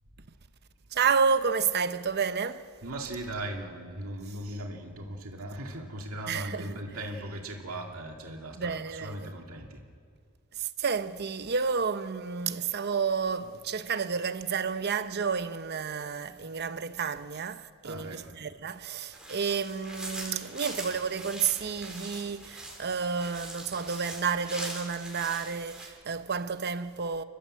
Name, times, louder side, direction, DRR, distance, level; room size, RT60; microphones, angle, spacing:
voice 1, 0.9-2.7 6.3-6.8 8.5-9.3 10.5-27.2, right 6 dB, 50° right, 0.8 m, -30 dB
voice 2, 2.8-9.8 17.8-18.3, right 1 dB, 75° right, 2.5 m, -38 dB
sound 1, 19.1-25.9, right 1 dB, 5° right, 4.1 m, -42 dB
30.0 x 12.5 x 7.7 m
head